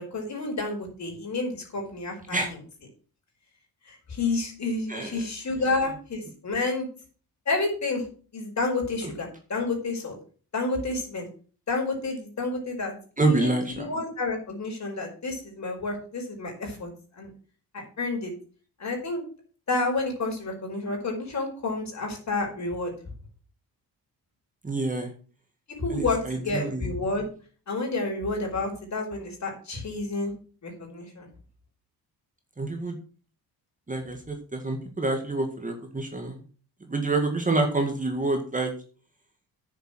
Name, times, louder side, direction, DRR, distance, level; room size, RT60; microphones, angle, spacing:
voice 1, 0.0-2.4 3.9-6.9 7.5-8.0 8.3-10.1 10.5-11.3 11.7-16.9 17.2-17.3 17.7-18.3 18.8-19.2 19.7-22.9 25.7-27.3 27.7-30.3 30.6-31.3, left 3 dB, 45° left, 1 dB, 5.0 m, -30 dB
voice 2, 5.6-6.0 9.0-9.1 13.2-13.9 24.6-25.1 25.9-26.9 32.6-33.0 33.9-36.4 36.8-38.7, right 2 dB, 20° right, 4 dB, 2.1 m, -27 dB
9.5 x 7.1 x 6.3 m, 0.41 s
cardioid pair, 100°, 39 cm